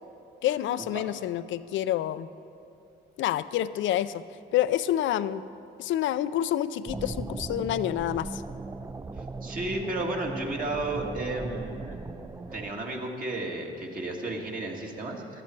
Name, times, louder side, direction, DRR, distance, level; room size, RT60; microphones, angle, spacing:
voice 1, 0.4-2.3 3.2-4.2 4.5-5.4 5.8-8.4, left 12 dB, 70° left, 14 dB, 0.5 m, -28 dB
sound 1, 6.9-12.7, right 3 dB, 15° right, 0.4 m, -38 dB
voice 2, 9.2-12.0 12.5-15.4, right 2 dB, 45° right, 0 dB, 2.0 m, -33 dB
16.0 x 11.5 x 4.5 m, 2.8 s
cardioid pair, 90°, 20 cm